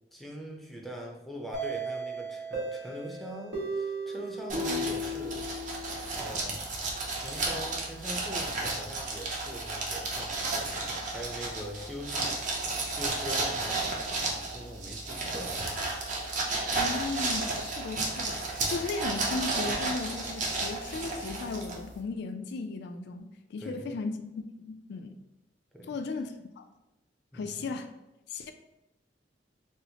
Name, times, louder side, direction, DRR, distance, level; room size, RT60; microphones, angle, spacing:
voice 1, 0.1-5.5 6.1-14.1 14.5-15.6 23.6-24.0 25.7-26.0 27.3-27.7, equal, ahead, -1 dB, 0.5 m, -42 dB
sound 1, 1.5-6.2, right 1 dB, 90° right, 1.3 m, -35 dB
sound 2, 4.5-22.0, right 2 dB, 45° right, 0.6 m, -33 dB
voice 2, 16.7-24.2 24.6-25.2 25.9-26.7 27.3-27.9 28.3-28.5, left 3 dB, 65° left, 7 dB, 0.3 m, -36 dB
4.2 x 2.0 x 2.7 m, 0.97 s
head